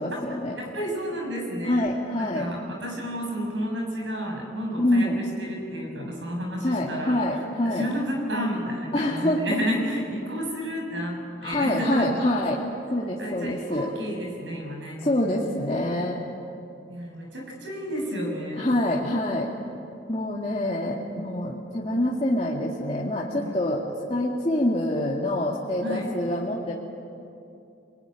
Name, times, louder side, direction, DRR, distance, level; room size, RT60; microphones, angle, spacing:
voice 1, 0.0-0.6 1.6-2.5 4.8-5.2 6.6-7.8 8.9-9.5 11.4-12.6 12.9-13.9 15.0-16.3 18.6-19.5 20.1-23.8 24.1-26.7, left 1 dB, 30° left, -4 dB, 2.1 m, -26 dB
voice 2, 0.6-1.9 2.2-7.2 7.6-12.1 13.2-15.4 16.9-18.7 23.4-23.5 25.8-26.1, equal, 75° right, 1 dB, 6.8 m, -31 dB
26.5 x 21.5 x 10.0 m, 2.6 s
head